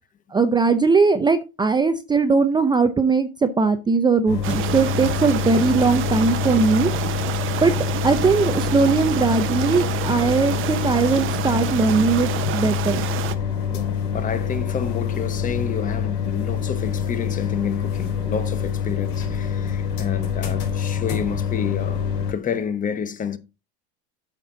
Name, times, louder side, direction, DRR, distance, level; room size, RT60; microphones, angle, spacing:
voice 1, 0.3-6.9 7.6-7.7 8.0-13.0, right 4 dB, 15° right, 0.6 m, -19 dB
sound 1, 4.3-22.3, left 8 dB, 60° left, 4.2 m, -26 dB
sound 2, 4.4-13.3, right 12 dB, 40° right, 0.9 m, -29 dB
voice 2, 13.7-23.4, left 7 dB, 25° left, 0.9 m, -29 dB
8.4 x 6.0 x 3.9 m
supercardioid pair, 120°, 32 cm